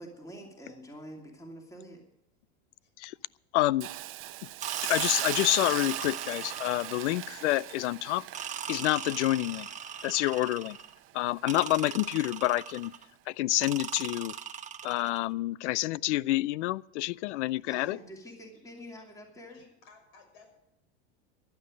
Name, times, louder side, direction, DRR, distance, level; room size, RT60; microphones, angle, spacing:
voice 1, 0.0-2.0 17.7-19.7, equal, 10° left, 2.7 m, -46 dB
voice 2, 2.8-3.3 17.6-18.3 18.9-19.0 19.5-20.6, left 2 dB, 60° left, 6.0 m, -58 dB
voice 3, 3.5-3.9 4.4-4.5 4.8-8.3 8.7-9.7 10.0-10.8 11.1-12.9 13.3-14.3 14.8-18.0, left 17 dB, 80° left, 0.5 m, -28 dB
Hiss, 3.8-10.8 11.2-11.4, right 15 dB, 35° right, 0.8 m, -38 dB
sound 1, 4.6-7.2 8.3-10.9 11.5-13.0 13.6-15.2, right 8 dB, 20° right, 1.1 m, -39 dB
15.0 x 11.5 x 5.1 m
supercardioid pair, 125°, 34 cm